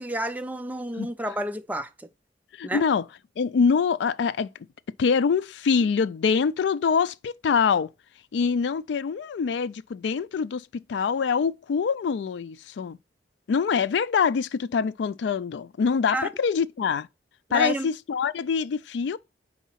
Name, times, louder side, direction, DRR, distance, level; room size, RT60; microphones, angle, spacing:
voice 1, 0.0-2.1 2.6-2.9 16.1-16.3 17.5-17.9, right 1 dB, 10° right, 0.4 m, -30 dB
voice 2, 2.5-3.1 3.4-4.5 5.0-7.9 8.3-13.0 13.5-17.1 17.5-19.2, left 6 dB, 80° left, 0.3 m, -24 dB
4.6 x 4.2 x 5.6 m
head